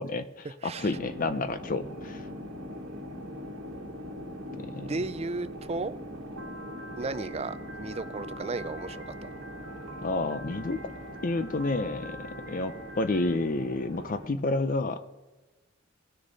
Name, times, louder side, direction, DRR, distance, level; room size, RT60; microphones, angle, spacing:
voice 1, 0.0-2.2 4.5-4.9 10.0-10.8 11.2-15.0, left 2 dB, 40° left, 12 dB, 0.5 m, -30 dB
voice 2, 0.6-1.0 4.9-6.0 7.0-9.3, right 3 dB, 30° right, 14 dB, 0.4 m, -34 dB
sound 1, 0.8-14.3, equal, 90° right, 1.4 m, -41 dB
Piano, 6.4-13.3, left 1 dB, 55° right, 1.1 m, -47 dB
19.0 x 6.6 x 4.0 m, 1.2 s
head